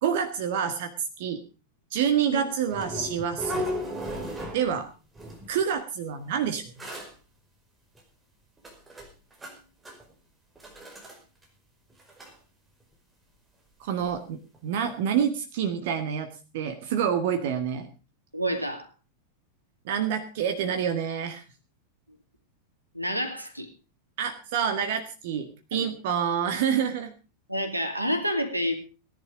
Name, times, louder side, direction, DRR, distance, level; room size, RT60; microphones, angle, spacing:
voice 1, 0.0-0.9 1.2-1.4 1.9-3.7 4.5-4.9 5.5-6.9 13.8-17.9 19.8-21.4 24.2-27.1, right 8 dB, 50° right, 7 dB, 1.7 m, -27 dB
sound 1, 2.7-4.9 5.1-5.6 6.4-6.5 6.8-7.1 7.9-8.0 8.6-9.6 9.8-10.1 10.5-11.2 11.4-11.5 11.9-12.3 14.0-14.1 14.5-14.6, equal, 10° right, 4.9 m, -36 dB
voice 2, 18.3-18.9 22.9-23.7 25.7-25.9 27.5-28.7, equal, 85° right, 6 dB, 2.5 m, -28 dB
17.5 x 11.0 x 5.0 m, 0.34 s
figure-of-eight pair, 90°, 0 cm